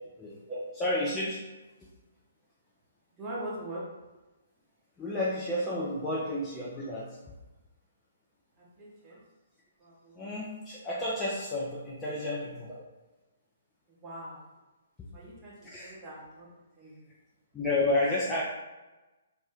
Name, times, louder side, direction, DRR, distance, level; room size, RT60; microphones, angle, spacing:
voice 1, 0.8-1.4 1.8-1.9 5.0-7.2 10.2-12.7 15.7-15.9 17.5-18.4, left 1 dB, 15° left, -7 dB, 0.4 m, -31 dB
voice 2, 3.1-3.9 8.6-9.2 9.8-10.2 14.0-14.4 15.1-16.5 16.8-17.1, right 1 dB, 15° right, -8 dB, 0.9 m, -42 dB
2.6 x 2.1 x 3.4 m, 1.1 s
figure-of-eight pair, 125°, 0 cm